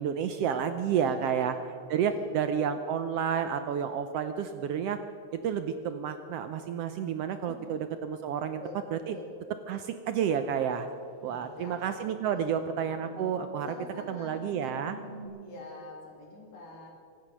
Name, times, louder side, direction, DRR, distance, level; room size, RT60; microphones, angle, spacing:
voice 1, 0.0-1.5 1.9-5.0 5.3-8.6 8.9-9.2 9.7-10.9 11.2-13.7 14.1-15.0, right 8 dB, 75° right, 9 dB, 1.5 m, -30 dB
voice 2, 0.8-1.4 2.1-2.6 7.5-7.8 8.6-8.8 9.1-9.3 11.2-11.9 12.3-12.8 13.7-14.4 15.2-16.9, left 2 dB, 70° left, -1 dB, 4.2 m, -46 dB
sound 1, 10.0-10.1 11.0-15.3, right 2 dB, 40° right, 2.9 m, -50 dB
24.0 x 8.7 x 6.1 m, 2.5 s
omnidirectional pair, 3.3 m